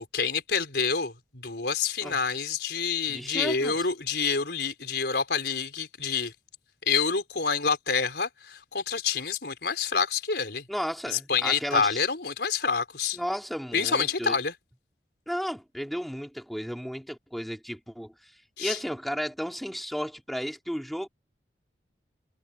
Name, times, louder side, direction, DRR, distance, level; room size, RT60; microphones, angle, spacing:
voice 1, 0.0-6.3 6.9-10.7 11.1-13.2 13.7-14.5 18.6-18.8, left 5 dB, 70° left, 4.1 m, -27 dB
voice 2, 3.1-3.8 10.7-12.0 13.1-14.4 15.3-18.1 18.6-21.1, equal, ahead, 3.4 m, -33 dB
head